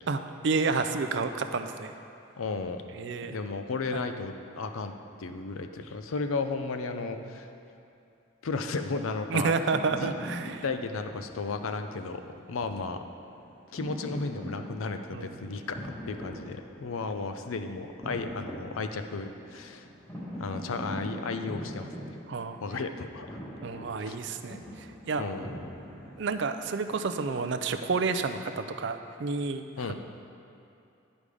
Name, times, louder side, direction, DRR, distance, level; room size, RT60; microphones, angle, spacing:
voice 1, 0.1-1.9 2.9-3.4 3.9-4.0 6.9-7.4 9.3-10.6 15.1-15.5 22.3-22.6 23.6-25.3 26.2-29.9, right 4 dB, 60° right, 9 dB, 0.4 m, -30 dB
voice 2, 2.4-2.8 3.2-4.9 5.2-7.5 8.4-9.5 10.0-10.1 10.4-13.0 13.7-19.9 20.4-22.1 22.6-23.4 24.0-24.2 25.2-25.8 29.8-29.9, left 4 dB, 85° left, 7 dB, 0.5 m, -34 dB
sound 1, 9.7-27.7, equal, 10° left, 1.4 m, -43 dB
10.0 x 5.2 x 4.9 m, 2.7 s
head